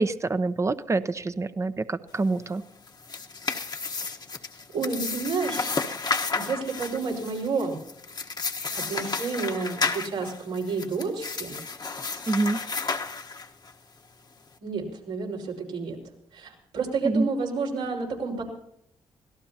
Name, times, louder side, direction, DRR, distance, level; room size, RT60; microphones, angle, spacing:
voice 1, 0.0-2.6 12.3-12.6 17.0-17.3, right 3 dB, 30° right, 12 dB, 0.8 m, -26 dB
sound 1, 2.8-13.7, left 4 dB, 40° left, 1.3 m, -32 dB
voice 2, 4.7-5.9 6.3-7.8 8.7-11.6 14.6-16.0 16.3-18.4, right 4 dB, 85° right, -3 dB, 5.0 m, -30 dB
25.0 x 17.5 x 2.9 m, 0.74 s
supercardioid pair, 55°, 11 cm